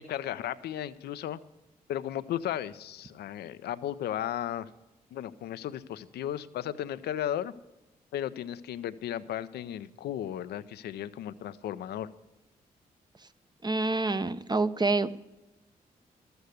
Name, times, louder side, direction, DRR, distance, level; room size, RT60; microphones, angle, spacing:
voice 1, 0.0-1.4 1.9-4.7 5.1-7.5 8.1-12.1, left 11 dB, 80° left, 14 dB, 0.6 m, -35 dB
voice 2, 13.6-15.1, right 3 dB, 25° right, 13 dB, 0.8 m, -27 dB
13.0 x 8.0 x 8.3 m, 1.0 s
supercardioid pair, 50°, 16 cm